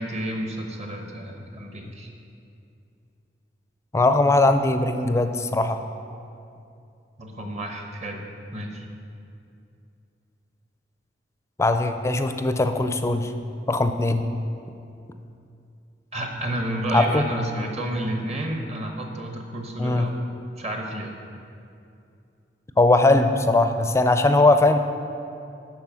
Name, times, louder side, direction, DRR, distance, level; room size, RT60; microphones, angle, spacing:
voice 1, 0.0-2.1 7.2-8.2 8.5-8.8 16.1-20.2 20.6-21.2, right 1 dB, 40° right, 2 dB, 1.0 m, -30 dB
voice 2, 3.9-5.8 11.6-13.3 13.7-14.3 16.9-17.3 19.8-20.1 22.8-24.8, left 2 dB, 15° left, 8 dB, 0.4 m, -20 dB
11.0 x 4.4 x 6.2 m, 2.6 s
head